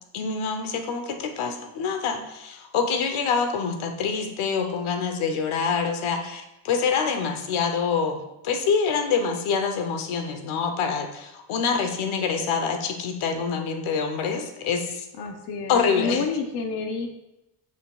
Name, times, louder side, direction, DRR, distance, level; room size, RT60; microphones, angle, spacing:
voice 1, 0.1-15.1 15.7-16.2, left 5 dB, 80° left, 6 dB, 0.9 m, -26 dB
voice 2, 15.2-17.1, left 4 dB, 55° left, 4 dB, 0.7 m, -29 dB
7.3 x 6.4 x 2.3 m, 0.90 s
cardioid pair, 175°, 48 cm